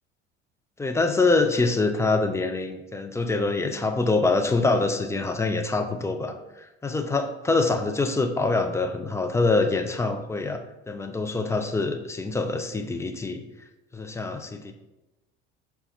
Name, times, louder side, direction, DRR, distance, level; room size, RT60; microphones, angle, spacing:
voice 1, 0.8-6.3 6.8-10.6 10.9-13.4 13.9-14.7, left 3 dB, 10° left, 5 dB, 0.3 m, -25 dB
5.2 x 2.3 x 4.1 m, 1.0 s
hypercardioid pair, 65°, 33 cm